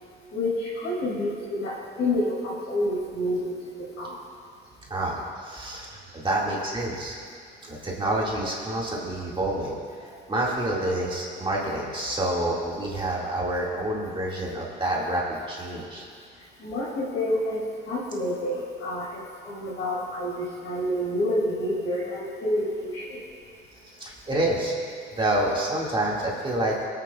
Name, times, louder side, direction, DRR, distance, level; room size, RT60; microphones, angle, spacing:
voice 1, 0.3-1.7 2.0-4.1 12.8-12.9 16.6-17.6 17.9-23.2, left 1 dB, 85° left, -10 dB, 3.4 m, -28 dB
voice 2, 4.9-5.9 6.1-7.2 7.6-9.8 10.3-16.0 24.0-24.7 25.2-26.9, right 1 dB, 25° right, -4 dB, 2.1 m, -28 dB
24.5 x 8.5 x 2.4 m, 2.1 s
cardioid pair, 90°, 20 cm